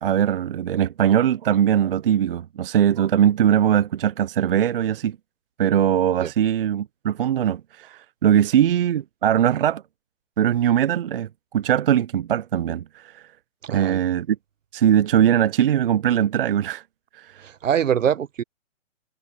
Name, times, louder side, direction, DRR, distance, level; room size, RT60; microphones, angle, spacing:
voice 1, 0.0-5.2 5.6-9.8 10.4-13.2 13.7-14.4 14.7-16.8, right 10 dB, 50° right, 0.5 m, -21 dB
voice 2, 13.7-14.0 17.4-18.4, right 8 dB, 75° right, 1.1 m, -23 dB
hypercardioid pair, 155°, 38 cm